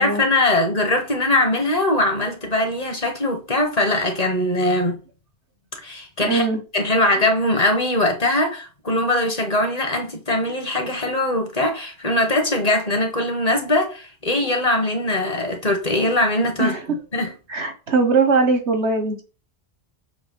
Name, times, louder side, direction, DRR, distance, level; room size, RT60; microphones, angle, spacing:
voice 1, 0.0-5.0 5.8-6.4 6.7-16.8 17.1-17.3, left 1 dB, 35° left, 1.5 m, -21 dB
voice 2, 6.3-6.6 14.4-14.5 16.6-16.8 17.5-19.2, right 4 dB, 90° right, 1.7 m, -20 dB
7.0 x 3.2 x 5.4 m
omnidirectional pair, 1.1 m